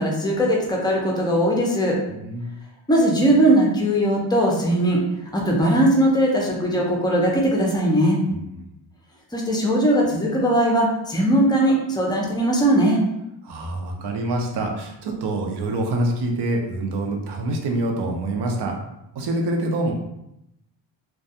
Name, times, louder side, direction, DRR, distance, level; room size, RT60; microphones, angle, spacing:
voice 1, 0.0-2.0 2.9-5.0 5.3-8.2 9.3-13.0, right 1 dB, 10° left, -2 dB, 0.5 m, -19 dB
voice 2, 2.1-2.5 8.3-8.6 13.4-18.7 19.1-19.9, right 1 dB, 60° right, 2 dB, 0.6 m, -26 dB
2.3 x 2.2 x 2.7 m, 0.85 s
cardioid pair, 105°, 46 cm